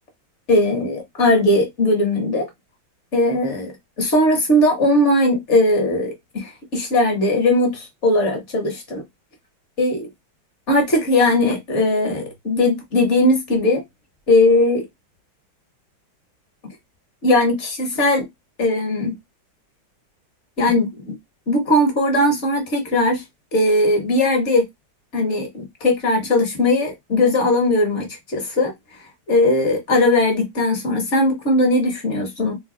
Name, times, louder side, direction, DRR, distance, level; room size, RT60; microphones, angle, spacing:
voice 1, 0.5-2.5 3.1-3.7 4.0-9.0 9.8-10.1 10.7-13.8 14.3-14.8 17.2-18.2 18.6-19.1 20.6-21.1 21.5-23.2 23.5-24.6 25.1-28.7 29.3-32.6, left 1 dB, 40° left, 1.2 m, -19 dB
3.2 x 2.3 x 3.7 m
omnidirectional pair, 2.1 m